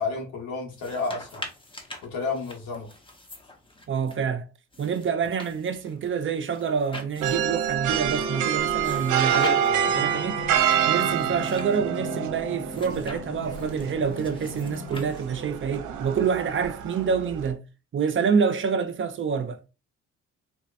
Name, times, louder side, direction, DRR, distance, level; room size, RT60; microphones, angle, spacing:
voice 1, 0.0-1.4 2.1-2.9 9.3-9.9, left 4 dB, 75° left, 1.5 m, -31 dB
sound 1, 0.7-4.1 4.7-7.6 8.8-9.9 10.7-11.8 12.7-15.5, left 1 dB, 15° left, 0.9 m, -43 dB
voice 2, 3.9-4.5 4.8-9.5 9.9-10.5 10.9-17.6 17.9-19.6, right 6 dB, 40° right, 0.6 m, -27 dB
sound 2, 7.2-17.5, right 9 dB, 80° right, 0.7 m, -27 dB
sound 3, 9.8-15.1, left 6 dB, 45° left, 0.6 m, -40 dB
4.0 x 2.9 x 2.5 m
cardioid pair, 90°, 30 cm